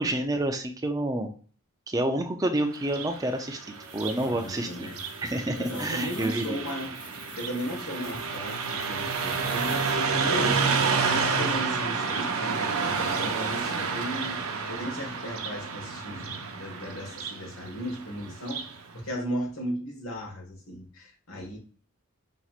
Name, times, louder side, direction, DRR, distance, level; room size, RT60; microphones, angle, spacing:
voice 1, 0.0-1.3 1.9-3.7 3.9-4.9 5.2-6.6, right 1 dB, 15° right, 5 dB, 0.4 m, -28 dB
Car passing by, 2.8-18.8, right 5 dB, 70° right, 0.6 m, -30 dB
sound 1, 3.7-10.0, left 2 dB, 20° left, 1.0 m, -48 dB
voice 2, 4.1-5.0 5.6-10.6 11.0-21.6, equal, 75° left, 0 dB, 1.4 m, -36 dB
5.3 x 2.9 x 2.4 m, 0.41 s
head